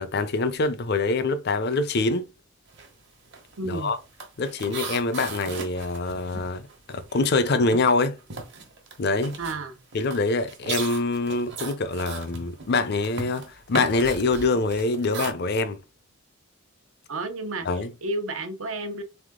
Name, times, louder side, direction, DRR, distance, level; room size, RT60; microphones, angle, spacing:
voice 1, 0.0-2.3 3.6-4.0 4.4-8.2 9.0-9.4 9.9-15.8 17.6-17.9, left 3 dB, 55° left, 0.6 m, -25 dB
sound 1, 2.7-3.0 3.2-7.3 7.6-15.3, right 4 dB, 60° right, 1.2 m, -38 dB
voice 2, 3.6-3.9 9.4-9.8 17.1-17.7 18.0-19.0, right 2 dB, 80° right, 0.9 m, -31 dB
3.6 x 3.5 x 3.7 m
head